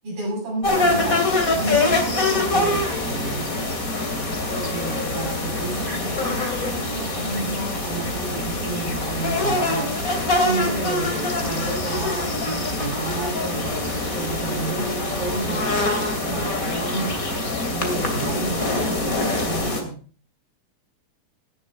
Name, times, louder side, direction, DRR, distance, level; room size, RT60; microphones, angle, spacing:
voice 1, 0.0-1.3 1.5-3.5 4.5-10.0 10.4-17.1 17.7-20.0, right 3 dB, 50° right, -2 dB, 9.4 m, -31 dB
sound 1, 0.6-19.8, left 2 dB, 25° left, 2.2 m, -24 dB
17.5 x 10.5 x 3.4 m, 0.38 s
omnidirectional pair, 4.8 m